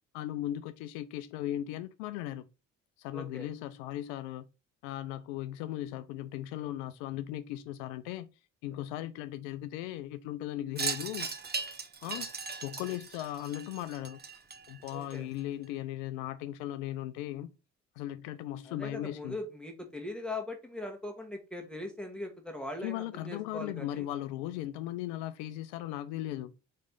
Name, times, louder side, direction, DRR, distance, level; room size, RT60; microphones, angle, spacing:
voice 1, 0.1-2.5 3.0-4.5 4.8-8.3 8.6-11.3 12.0-12.3 12.6-14.2 14.7-17.5 18.0-19.4 22.8-26.5, left 13 dB, 85° left, 0.5 m, -37 dB
voice 2, 3.1-3.5 12.0-12.2 14.9-15.3 18.7-24.1, left 2 dB, 5° left, 1.3 m, -40 dB
Wind chime, 10.8-15.4, right 5 dB, 30° right, 0.8 m, -38 dB
4.2 x 3.2 x 3.6 m
hypercardioid pair, 60°, 34 cm